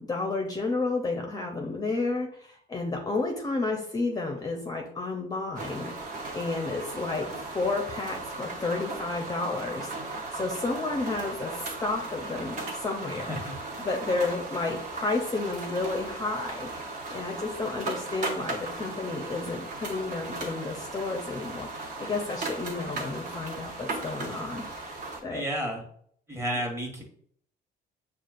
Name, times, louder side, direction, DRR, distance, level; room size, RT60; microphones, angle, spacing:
voice 1, 0.0-5.9 6.3-13.4 13.8-16.7 17.1-25.4, left 3 dB, 20° left, 2 dB, 0.6 m, -31 dB
sound 1, 5.5-25.2, right 3 dB, 45° right, 1.1 m, -37 dB
voice 2, 13.1-13.6 25.3-25.9 26.3-27.0, right 1 dB, 15° right, 0 dB, 1.2 m, -32 dB
6.2 x 2.4 x 2.4 m, 0.62 s
cardioid pair, 110°, 17 cm